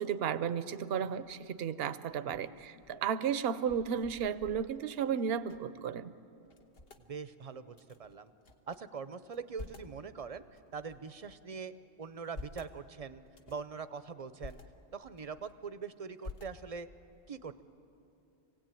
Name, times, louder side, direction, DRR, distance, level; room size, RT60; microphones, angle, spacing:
voice 1, 0.0-6.1, right 7 dB, 65° right, 13 dB, 0.9 m, -33 dB
sound 1, 1.2-1.6 2.1-5.8 6.1-6.2 6.5-7.0 7.7-8.8 9.2-10.0 10.6-11.5 12.0-12.7 13.3-13.7 14.2-14.6 15.1-15.8 16.2-16.9, left 3 dB, 60° left, 1.4 m, -50 dB
voice 2, 7.0-8.3 8.7-11.7 12.0-14.6 14.9-16.9 17.3-17.6, right 5 dB, 40° right, 12 dB, 0.7 m, -43 dB
25.0 x 17.0 x 9.0 m, 2.7 s
omnidirectional pair, 1.1 m